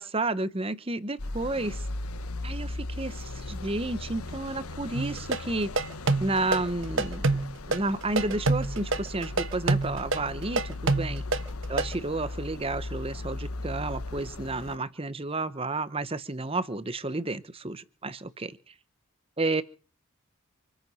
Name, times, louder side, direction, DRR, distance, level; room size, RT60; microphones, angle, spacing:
voice 1, 0.0-1.8 2.4-5.8 6.2-7.2 7.7-11.2 11.7-18.6 19.4-19.6, right 2 dB, 25° right, 15 dB, 0.9 m, -31 dB
sound 1, 1.2-14.8, left 2 dB, 85° left, 1.2 m, -37 dB
sound 2, 4.9-11.9, right 3 dB, 60° right, 1.2 m, -26 dB
27.5 x 9.2 x 5.5 m, 0.38 s
head